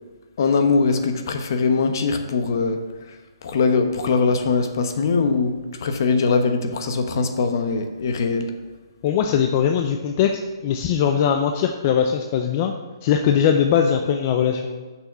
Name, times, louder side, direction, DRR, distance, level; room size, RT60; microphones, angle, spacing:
voice 1, 0.4-2.8 3.4-8.5, left 4 dB, 50° left, 6 dB, 1.0 m, -21 dB
voice 2, 9.0-12.7 13.0-14.8, left 8 dB, 30° left, 5 dB, 0.5 m, -20 dB
6.9 x 6.1 x 6.9 m, 1.3 s
hypercardioid pair, 165°, 3 cm